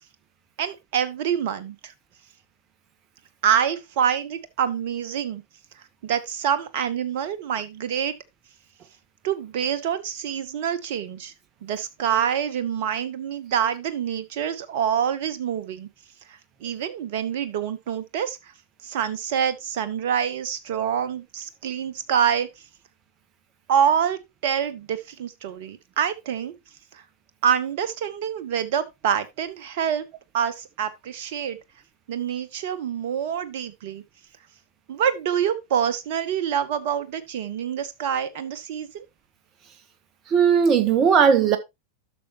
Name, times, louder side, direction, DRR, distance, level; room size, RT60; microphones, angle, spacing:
voice 1, 0.6-1.9 3.4-5.4 6.0-8.1 9.2-11.3 11.6-15.9 16.6-18.4 18.8-22.5 23.7-26.5 26.9-27.0 27.4-30.0 30.3-31.6 32.1-34.0 34.9-39.0, right 8 dB, 50° right, 1.0 m, -26 dB
voice 2, 40.3-41.6, right 7 dB, 30° right, 1.3 m, -17 dB
11.5 x 6.4 x 3.0 m
figure-of-eight pair, 90°, 0 cm